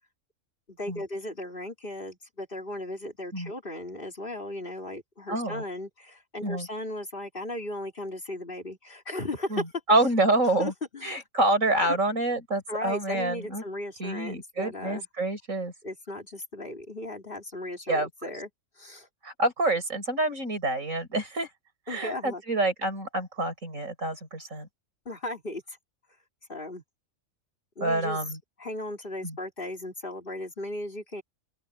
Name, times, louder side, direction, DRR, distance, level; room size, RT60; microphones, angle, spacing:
voice 1, 0.7-9.6 10.6-11.2 11.8-12.0 12.7-15.1 15.8-18.5 18.8-19.1 21.9-22.4 25.0-25.8 26.5-26.8 27.8-28.2 28.6-31.2, left 1 dB, 40° left, 3.2 m, -36 dB
voice 2, 5.3-5.6 6.4-6.7 9.5-10.7 11.0-13.6 14.0-15.7 17.9-18.1 19.2-21.5 21.9-24.7 27.8-28.4 29.2-29.4, right 2 dB, 80° right, 6.5 m, -27 dB
open air
omnidirectional pair, 1.4 m